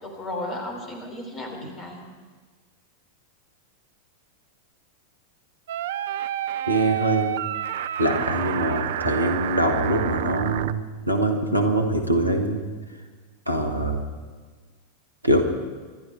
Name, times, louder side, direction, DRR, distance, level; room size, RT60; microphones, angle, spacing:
voice 1, 0.0-2.0, left 1 dB, 20° left, 3 dB, 3.7 m, -34 dB
sound 1, 5.7-10.7, right 12 dB, 55° right, 0.5 m, -29 dB
voice 2, 6.7-7.4 8.0-10.8 11.1-12.6 13.5-14.0 15.2-15.4, right 1 dB, 85° right, 6 dB, 1.5 m, -23 dB
25.5 x 11.5 x 4.6 m, 1.4 s
figure-of-eight pair, 90°, 0 cm